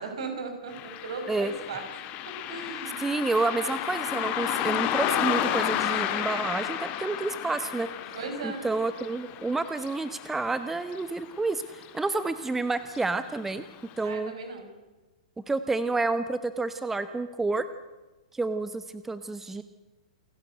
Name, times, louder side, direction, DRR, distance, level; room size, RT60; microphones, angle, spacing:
voice 1, 0.0-1.8 2.3-3.0 8.1-8.7 14.0-14.7, right 4 dB, 65° right, 5 dB, 5.3 m, -37 dB
Car passing by, 0.7-11.5 11.8-11.9 12.9-13.0 13.5-13.6 14.1-14.2, left 11 dB, 40° left, 1.7 m, -32 dB
voice 2, 3.0-7.9 8.4-13.6 14.0-14.3 15.5-17.7 18.3-19.6, right 3 dB, 10° right, 12 dB, 0.8 m, -29 dB
28.5 x 11.5 x 8.0 m, 1.2 s
hypercardioid pair, 110°, 3 cm